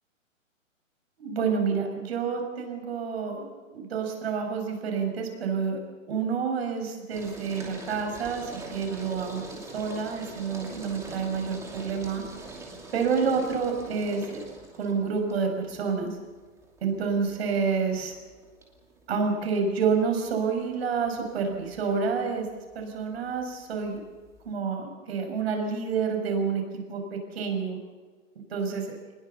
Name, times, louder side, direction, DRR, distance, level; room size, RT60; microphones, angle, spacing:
voice 1, 1.2-3.5 3.7-5.8 6.1-12.2 12.9-14.4 14.7-16.2 16.8-18.1 19.1-22.5 22.7-24.0 24.4-27.8 28.5-28.9, right 5 dB, 50° right, 4 dB, 6.4 m, -28 dB
sound 1, 7.1-24.5, right 2 dB, 5° right, 2.7 m, -44 dB
24.0 x 20.5 x 7.0 m, 1.5 s
hypercardioid pair, 155°, 40 cm